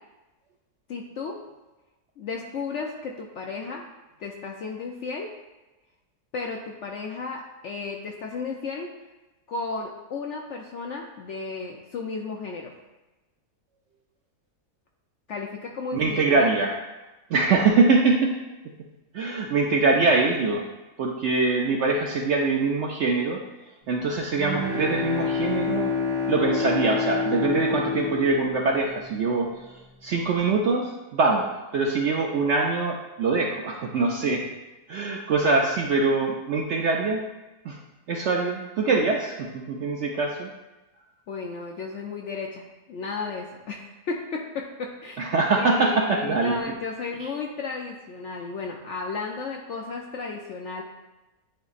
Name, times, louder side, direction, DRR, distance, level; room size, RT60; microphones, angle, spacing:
voice 1, 0.9-1.4 2.2-3.8 4.2-5.3 6.3-8.9 9.5-12.7 15.3-16.5 41.3-45.3 45.6-50.8, left 4 dB, 65° left, 0 dB, 0.7 m, -34 dB
voice 2, 15.9-16.7 17.3-18.3 19.1-20.7 21.0-23.4 23.9-25.9 26.3-34.4 34.9-37.2 37.6-37.8 38.1-40.5 45.2-46.6 47.2-47.3, right 3 dB, 70° right, 0 dB, 0.7 m, -23 dB
Bowed string instrument, 24.0-29.5, left 4 dB, 90° left, 2.3 m, -28 dB
9.6 x 4.0 x 2.4 m, 1.1 s
omnidirectional pair, 1.7 m